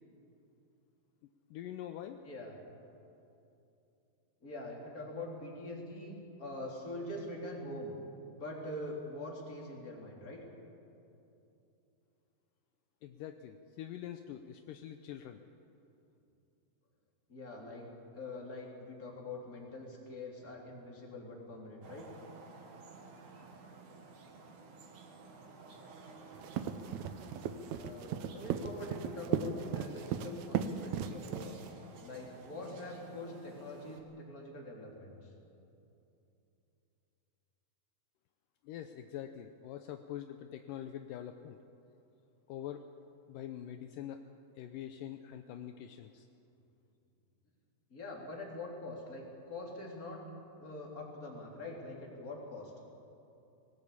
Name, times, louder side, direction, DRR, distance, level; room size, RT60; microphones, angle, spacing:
voice 1, 1.5-2.2 13.0-15.4 38.6-41.6 42.5-42.9 43.3-44.2 44.6-46.3, left 11 dB, 80° left, 7 dB, 2.1 m, -44 dB
voice 2, 2.3-2.6 4.4-7.9 8.4-10.4 17.3-22.1 27.7-31.5 32.0-35.3 47.9-50.2 50.6-52.7, left 2 dB, 25° left, -1 dB, 3.6 m, -44 dB
sound 1, 21.8-34.0, right 4 dB, 60° right, 3.1 m, -53 dB
sound 2, 26.3-31.8, right 8 dB, 80° right, 1.7 m, -36 dB
20.0 x 18.5 x 8.6 m, 2.8 s
omnidirectional pair, 4.3 m